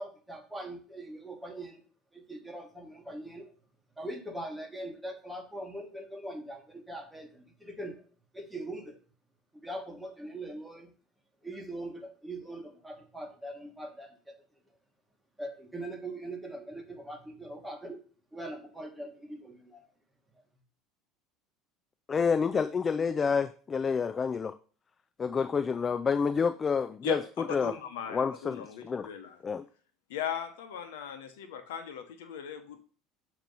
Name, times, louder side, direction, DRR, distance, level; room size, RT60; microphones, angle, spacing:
voice 1, 0.0-1.8 2.1-3.5 4.0-8.0 8.3-9.0 9.6-10.9 11.4-14.1 15.4-18.0 18.3-19.8, right 1 dB, 5° right, 2 dB, 1.5 m, -41 dB
voice 2, 22.1-24.5 25.2-27.7 28.1-29.1 29.4-29.6, left 5 dB, 30° left, 11 dB, 0.3 m, -28 dB
voice 3, 27.0-29.4 30.1-32.8, left 8 dB, 90° left, 8 dB, 0.9 m, -38 dB
7.4 x 3.0 x 5.3 m, 0.40 s
supercardioid pair, 105°, 0 cm